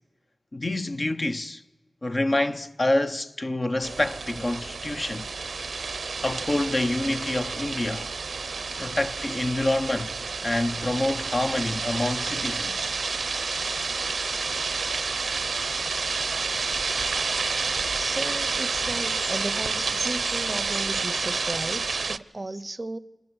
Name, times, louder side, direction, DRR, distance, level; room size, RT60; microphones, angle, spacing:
voice 1, 0.5-1.6 2.0-5.3 6.2-8.1 8.8-10.1 10.4-12.9, left 1 dB, 35° left, 0.8 m, -27 dB
sound 1, 3.8-22.2, right 4 dB, 75° right, 0.6 m, -29 dB
voice 2, 17.9-23.0, right 2 dB, 30° right, 0.6 m, -35 dB
25.5 x 20.5 x 6.2 m
wide cardioid pair, 85°, 0 cm